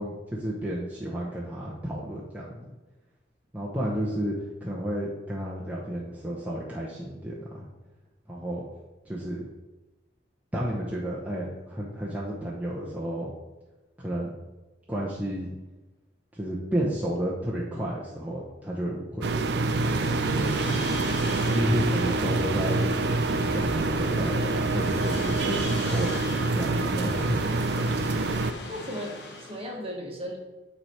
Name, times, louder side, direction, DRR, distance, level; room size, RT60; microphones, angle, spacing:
voice 1, 0.0-2.7 3.5-4.3 4.6-7.7 8.3-8.6 9.0-9.4 10.5-13.3 14.0-14.3 14.9-15.5 16.3-19.3 20.4-20.6 21.5-22.8 23.5-26.2 26.5-27.6, equal, 10° right, -6 dB, 0.7 m, -31 dB
sound 1, 19.2-28.5, right 3 dB, 60° right, 0.4 m, -26 dB
sound 2, 19.5-29.7, left 2 dB, 60° left, 1.0 m, -39 dB
voice 2, 24.2-24.7 28.7-30.4, equal, 30° right, 0 dB, 1.2 m, -36 dB
8.9 x 3.3 x 4.4 m, 1.1 s
head